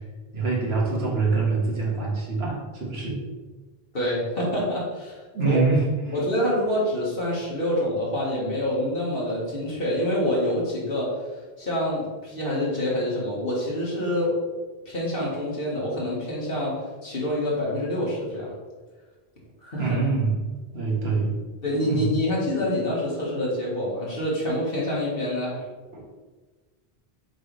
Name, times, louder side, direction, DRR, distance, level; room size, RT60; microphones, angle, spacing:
voice 1, 0.3-3.2 5.3-5.8 6.1-6.2 19.8-20.4 20.7-21.4 21.8-22.2 25.9-26.0, right 3 dB, 90° right, -4 dB, 1.8 m, -25 dB
voice 2, 3.9-5.6 6.1-11.1 11.6-14.3 14.9-16.8 17.0-18.5 19.6-20.0 21.6-25.6, left 1 dB, 65° left, -6 dB, 2.1 m, -26 dB
7.4 x 4.0 x 3.4 m, 1.3 s
omnidirectional pair, 1.0 m